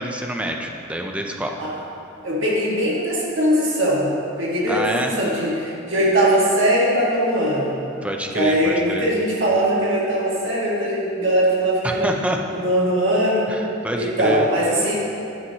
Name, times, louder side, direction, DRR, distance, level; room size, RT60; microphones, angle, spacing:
voice 1, 0.0-1.6 4.7-5.2 8.0-9.1 11.8-12.4 13.5-14.5, equal, 5° right, 2 dB, 0.5 m, -27 dB
voice 2, 2.2-4.1 4.4-7.7 8.3-12.1 12.5-13.5 14.0-14.9, right 1 dB, 70° right, -5 dB, 1.7 m, -20 dB
10.0 x 7.7 x 2.8 m, 2.6 s
head